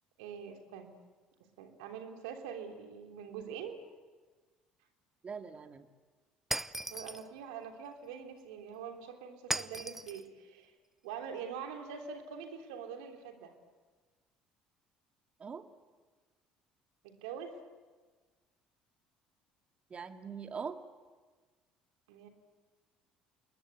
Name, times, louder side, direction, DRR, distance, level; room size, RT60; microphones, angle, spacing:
voice 1, 0.2-0.9 1.6-3.8 6.9-10.7 11.0-13.5 17.0-17.5 22.1-22.3, right 7 dB, 75° right, 4 dB, 3.4 m, -44 dB
voice 2, 5.2-5.8 15.4-15.6 19.9-20.8, right 6 dB, 35° right, 7 dB, 2.3 m, -42 dB
Shatter, 6.5-7.3 9.5-10.2, right 1 dB, 10° right, 0.9 m, -37 dB
28.5 x 20.5 x 9.4 m, 1.4 s
hypercardioid pair, 60°, 3 cm